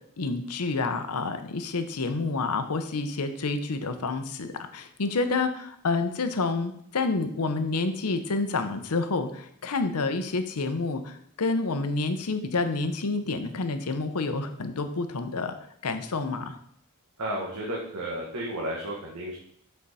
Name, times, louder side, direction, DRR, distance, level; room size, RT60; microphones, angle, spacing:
voice 1, 0.2-15.5 15.8-16.6, left 3 dB, 80° left, 8 dB, 0.7 m, -29 dB
voice 2, 17.2-19.4, right 1 dB, 85° right, -3 dB, 1.3 m, -32 dB
7.5 x 4.5 x 4.1 m, 0.69 s
head